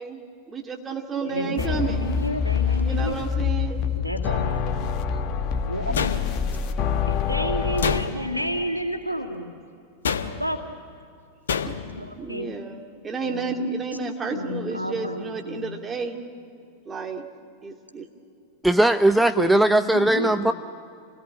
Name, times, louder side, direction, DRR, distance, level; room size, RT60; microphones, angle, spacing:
voice 1, 0.0-2.0 2.8-3.8 4.2-4.4 5.9-6.3 11.6-11.7 12.2-16.2 16.9-17.3 17.6-18.1, right 4 dB, 20° right, 3 dB, 2.3 m, -32 dB
voice 2, 1.2-3.2 3.9-4.7 5.7-6.0 7.1-9.5 10.4-10.7 11.9-12.5 13.2-13.5 14.3-15.8 19.4-20.5, equal, 90° left, 3 dB, 2.2 m, -30 dB
sound 1, 1.6-8.0, left 7 dB, 40° left, 1.3 m, -26 dB
sound 2, 5.9-6.7 7.8-8.5 10.0-10.6 11.5-12.0, left 6 dB, 65° left, 1.1 m, -27 dB
voice 3, 18.6-20.5, right 1 dB, 5° right, 10 dB, 0.5 m, -19 dB
27.5 x 18.5 x 9.9 m, 2.5 s
figure-of-eight pair, 90°, 0 cm